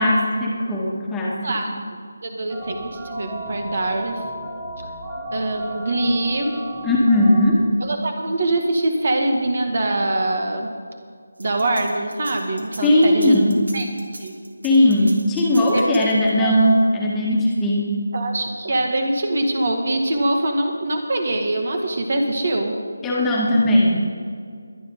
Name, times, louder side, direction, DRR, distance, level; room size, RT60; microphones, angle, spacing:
voice 1, 0.0-1.6 6.8-7.6 12.8-13.7 14.6-17.9 23.0-24.1, left 1 dB, 10° left, -5 dB, 1.9 m, -18 dB
voice 2, 2.2-4.2 5.3-6.6 7.8-10.7 11.4-13.4 13.7-13.9 14.2-14.4 15.7-16.0 16.4-16.5 18.1-22.8, right 2 dB, 50° right, 4 dB, 1.9 m, -23 dB
sound 1, 2.5-7.5, right 1 dB, 20° right, 1.7 m, -34 dB
sound 2, 11.4-16.5, right 1 dB, 80° right, 2.6 m, -40 dB
22.5 x 10.0 x 4.0 m, 2.1 s
figure-of-eight pair, 160°, 0 cm